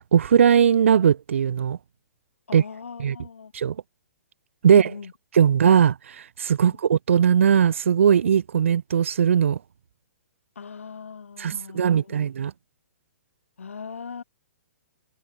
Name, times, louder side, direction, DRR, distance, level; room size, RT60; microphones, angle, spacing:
voice 1, 0.1-1.8 2.5-2.6 3.0-3.2 3.5-3.8 4.6-4.9 5.3-6.0 6.4-9.6 11.4-12.5, right 8 dB, 65° right, 0.5 m, -19 dB
voice 2, 2.5-3.5 4.7-5.1 6.6-6.8 10.6-12.3 13.6-14.2, left 5 dB, 70° left, 7.2 m, -40 dB
figure-of-eight pair, 120°, 7 cm